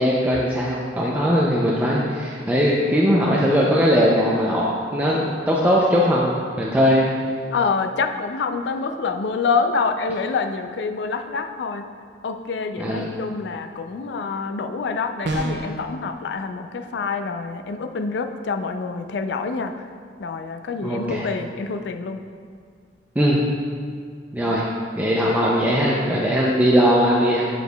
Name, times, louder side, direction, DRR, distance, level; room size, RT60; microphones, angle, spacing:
voice 1, 0.0-7.1 12.8-13.1 20.8-21.3 23.2-23.4 24.3-24.7 25.0-27.5, equal, 10° right, -5 dB, 0.4 m, -20 dB
voice 2, 7.5-11.8 12.2-19.7 20.2-22.2 24.4-24.6, left 4 dB, 65° left, 7 dB, 0.4 m, -26 dB
sound 1, 15.2-15.8, right 2 dB, 70° right, 0.7 m, -26 dB
6.8 x 6.3 x 2.3 m, 2.1 s
head